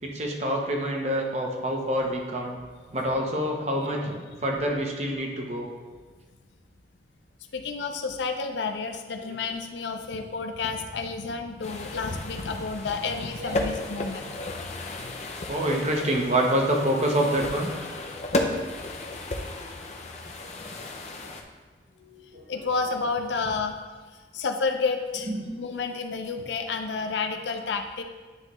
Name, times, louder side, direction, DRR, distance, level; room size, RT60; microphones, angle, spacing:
voice 1, 0.0-2.6 2.9-5.7 13.1-13.7 15.5-17.7 21.2-21.3 22.3-22.5 25.3-25.6, right 1 dB, 40° right, 1 dB, 0.8 m, -27 dB
voice 2, 7.5-14.4 14.9-15.1 22.0-23.8 24.3-25.3 25.6-28.0, left 4 dB, 90° left, 6 dB, 0.5 m, -30 dB
sound 1, 11.6-21.4, left 2 dB, 40° left, 0.5 m, -34 dB
9.6 x 3.2 x 3.1 m, 1.4 s
head